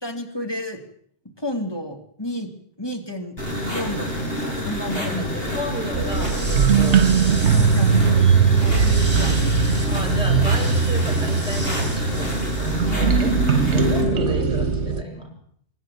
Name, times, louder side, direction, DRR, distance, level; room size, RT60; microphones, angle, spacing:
voice 1, 0.0-0.8 1.4-2.5 2.8-3.4 3.7-5.6 7.4-9.6 12.9-13.6, left 1 dB, 20° left, 4 dB, 2.9 m, -32 dB
sound 1, 3.4-14.0, left 1 dB, 55° left, 6.8 m, -28 dB
voice 2, 4.9-7.8 9.9-15.3, equal, 5° right, 2 dB, 7.1 m, -33 dB
sound 2, 5.9-13.2, right 1 dB, 20° right, 3.7 m, -37 dB
sound 3, 5.9-15.0, right 5 dB, 70° right, 1.4 m, -20 dB
24.5 x 11.5 x 9.3 m, 0.64 s
omnidirectional pair, 1.2 m